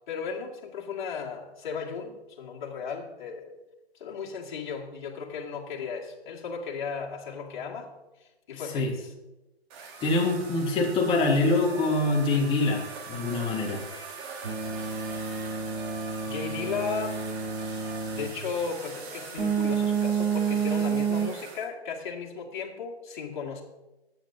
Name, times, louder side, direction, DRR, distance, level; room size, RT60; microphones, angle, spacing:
voice 1, 0.1-3.6 3.9-7.9 8.5-9.1 16.2-17.2 18.1-23.6, left 6 dB, 50° left, -2 dB, 2.3 m, -35 dB
sound 1, 9.7-21.7, right 5 dB, 25° right, 1.5 m, -42 dB
voice 2, 10.0-13.8, left 2 dB, 15° left, -1 dB, 1.9 m, -25 dB
sound 2, 14.4-18.4 19.4-21.3, right 6 dB, 60° right, 3.2 m, -29 dB
18.0 x 9.1 x 2.8 m, 1.0 s
figure-of-eight pair, 135°, 32 cm